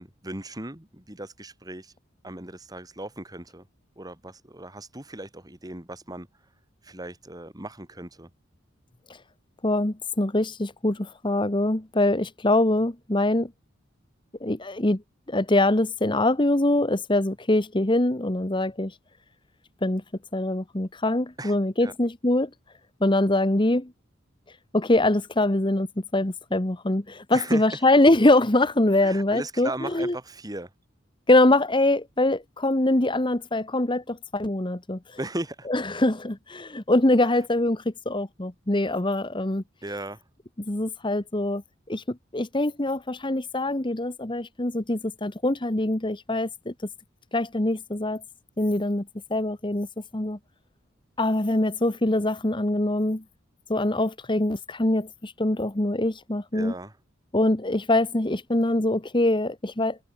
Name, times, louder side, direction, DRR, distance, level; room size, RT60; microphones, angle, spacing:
voice 1, 0.0-1.9 2.2-3.7 4.0-6.3 6.8-8.3 21.4-21.6 21.8-21.9 27.3-27.8 29.0-30.7 35.2-35.7 37.2-37.3 39.8-40.2 56.5-57.0, right 1 dB, 20° right, 2.9 m, -37 dB
voice 2, 9.6-13.5 14.4-15.0 15.3-18.9 19.8-20.0 20.3-22.5 23.0-23.9 24.7-30.1 31.3-35.2 35.7-39.6 40.7-41.6 41.9-46.7 47.3-48.2 48.6-49.0 49.3-49.9 50.1-50.4 51.2-53.2 53.7-56.7 57.3-60.0, left 1 dB, 25° left, 1.3 m, -23 dB
head